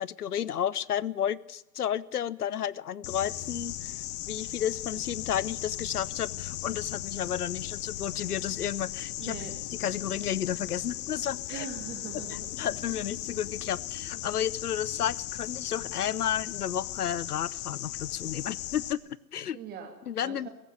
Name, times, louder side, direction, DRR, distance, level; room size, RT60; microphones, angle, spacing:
voice 1, 0.0-3.9 4.3-9.4 9.8-11.7 12.5-19.6 20.1-20.5, left 9 dB, 65° left, 22 dB, 0.9 m, -32 dB
sound 1, 3.0-18.9, left 14 dB, 25° left, 0.9 m, -37 dB
voice 2, 9.2-9.6 11.5-12.5 12.8-13.0 19.5-19.9 20.2-20.5, right 7 dB, 20° right, 4 dB, 2.9 m, -42 dB
18.0 x 15.5 x 9.6 m, 0.89 s
figure-of-eight pair, 130°, 48 cm